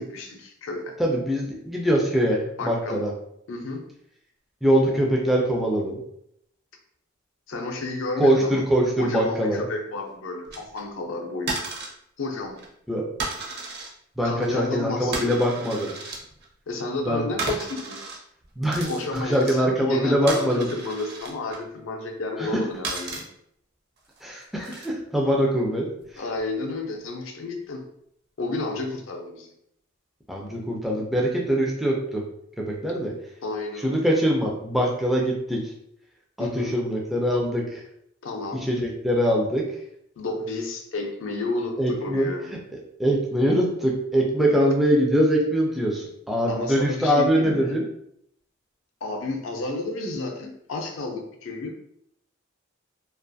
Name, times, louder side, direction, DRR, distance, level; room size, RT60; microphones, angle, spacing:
voice 1, 0.0-1.0 2.6-3.0 3.5-3.8 7.5-8.6 9.0-11.6 12.2-12.6 14.2-15.5 16.7-18.0 18.8-23.2 26.2-27.9 28.4-29.5 33.4-34.1 36.4-36.7 38.2-38.6 40.2-42.5 46.5-47.8 49.0-51.7, left 2 dB, 65° left, 3 dB, 0.5 m, -31 dB
voice 2, 1.0-3.1 4.6-6.0 8.2-9.6 12.9-13.1 14.2-15.9 17.0-17.2 18.6-20.7 22.5-22.6 24.2-25.9 30.3-32.2 32.6-33.1 33.8-35.6 36.4-37.8 38.6-39.6 41.8-42.3 43.0-47.8, equal, ahead, -2 dB, 0.3 m, -23 dB
sound 1, 10.4-10.8 11.5-11.9 12.4-12.7 13.2-13.9 14.2-14.5 15.1-16.4 17.4-18.2 18.4-19.6 20.3-21.6 22.8-23.2 24.0-24.9 26.1-26.4, right 3 dB, 50° right, 0.5 m, -33 dB
2.4 x 2.3 x 2.5 m, 0.74 s
head